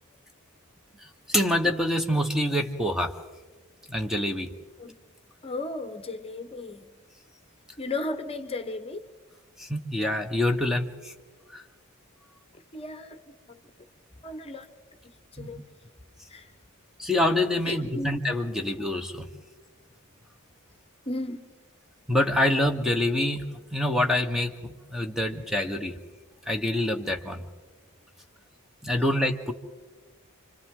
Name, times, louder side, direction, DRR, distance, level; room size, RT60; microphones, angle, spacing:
voice 1, 1.3-3.2 3.9-4.5 9.6-11.1 11.5-11.6 15.4-15.5 17.0-19.3 22.1-23.4 23.7-25.9 26.5-27.4 28.8-29.5, left 1 dB, ahead, 4 dB, 1.0 m, -26 dB
voice 2, 5.4-6.9 7.8-9.1 12.7-13.2 13.5-13.6 14.2-14.7 15.3-15.6 16.3-16.5 17.7-18.1 21.1-21.5, left 2 dB, 30° left, 8 dB, 1.0 m, -34 dB
29.5 x 25.5 x 3.8 m, 1.3 s
head